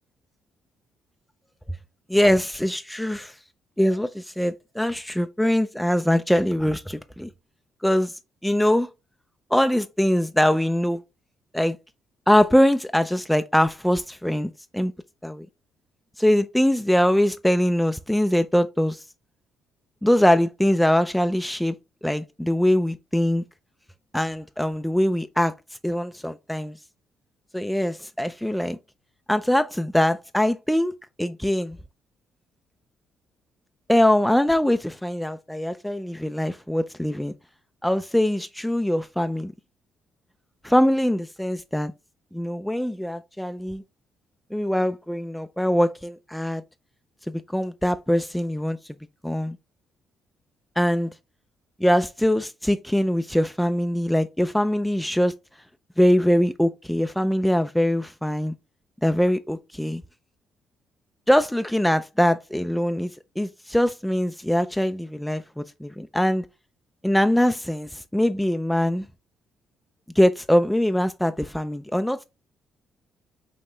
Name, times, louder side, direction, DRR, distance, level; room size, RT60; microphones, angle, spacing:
voice 1, 2.1-3.3 3.8-7.3 7.8-8.2 8.4-8.9 9.5-11.0 11.5-11.8 12.3-14.9 15.2-15.5 16.2-19.0 20.0-21.8 22.0-23.4 24.1-25.5 25.8-26.8 27.5-28.8 29.3-30.9 31.2-31.8 33.9-37.3 37.8-39.5 40.6-41.9 42.3-43.8 44.5-46.6 47.3-48.8 49.2-49.6 50.8-51.1 51.8-55.3 56.0-58.5 59.0-60.0 61.3-66.5 67.0-69.1 70.2-72.2, equal, 5° left, 0.3 m, -22 dB
5.3 x 2.8 x 3.1 m
cardioid pair, 110°, 0 cm